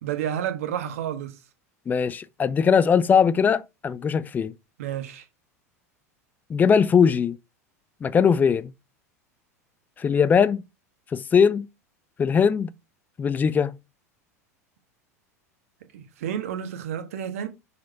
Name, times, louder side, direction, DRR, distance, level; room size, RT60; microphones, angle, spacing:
voice 1, 0.0-1.4 4.8-5.2 15.9-17.5, right 10 dB, 60° right, 1.4 m, -30 dB
voice 2, 1.9-4.5 6.5-7.4 8.0-8.7 10.0-10.6 11.1-11.7 12.2-12.7 13.2-13.8, left 6 dB, 20° left, 0.5 m, -20 dB
6.2 x 4.4 x 4.5 m
figure-of-eight pair, 80°, 9 cm